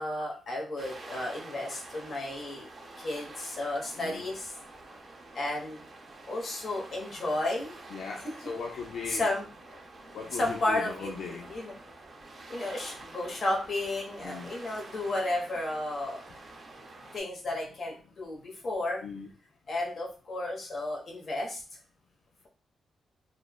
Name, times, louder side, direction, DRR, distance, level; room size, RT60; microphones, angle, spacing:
voice 1, 0.0-2.7 3.0-4.6 5.3-5.8 6.3-7.8 9.1-9.4 10.3-11.7 12.5-16.2 17.1-19.0 19.7-21.6, left 2 dB, 50° left, -2 dB, 0.9 m, -33 dB
sound 1, 0.8-17.2, right 2 dB, 40° right, 0.5 m, -48 dB
voice 2, 2.9-4.2 7.9-9.3 10.1-11.5 14.2-14.5 17.0-17.1 19.0-19.3, left 5 dB, 80° left, 0 dB, 0.3 m, -40 dB
3.2 x 2.0 x 2.2 m, 0.38 s
cardioid pair, 115°, 0 cm